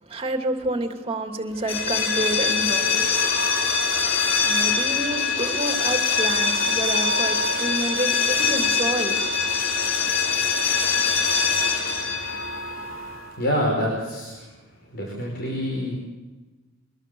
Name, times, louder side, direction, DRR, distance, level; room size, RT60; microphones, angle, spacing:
voice 1, 0.0-3.2 4.1-9.2, right 2 dB, 30° right, 2.7 m, -29 dB
sound 1, 1.6-13.3, left 5 dB, 80° left, 3.7 m, -23 dB
voice 2, 13.4-14.5 14.9-16.0, equal, 55° left, 5.0 m, -26 dB
24.0 x 21.5 x 7.1 m
head